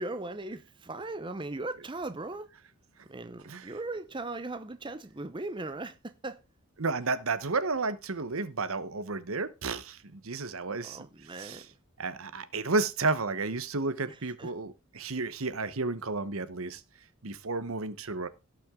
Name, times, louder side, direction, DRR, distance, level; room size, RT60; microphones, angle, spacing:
voice 1, 0.0-2.5 3.1-6.4 10.8-11.7 14.1-14.5, right 2 dB, 20° right, 0.7 m, -38 dB
voice 2, 6.8-11.1 11.4-11.7 12.0-16.8 17.2-18.3, right 3 dB, 70° right, 1.0 m, -32 dB
17.0 x 6.0 x 3.7 m
head